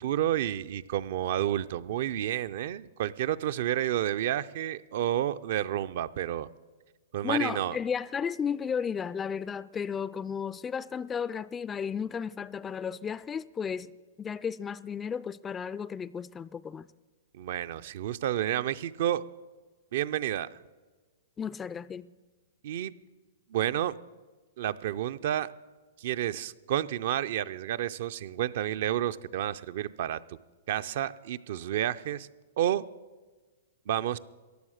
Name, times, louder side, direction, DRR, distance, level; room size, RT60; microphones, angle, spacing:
voice 1, 0.0-6.5 7.1-7.8 17.3-19.2 19.9-20.5 22.6-22.9 23.5-24.0 24.6-25.5 26.0-30.4 30.7-32.3 32.6-32.8 33.9-34.2, right 11 dB, 60° right, 0.5 m, -30 dB
voice 2, 7.2-13.9 14.2-16.9 21.4-22.1, left 7 dB, 15° left, 0.3 m, -33 dB
15.0 x 10.5 x 6.5 m
hypercardioid pair, 140°, 0 cm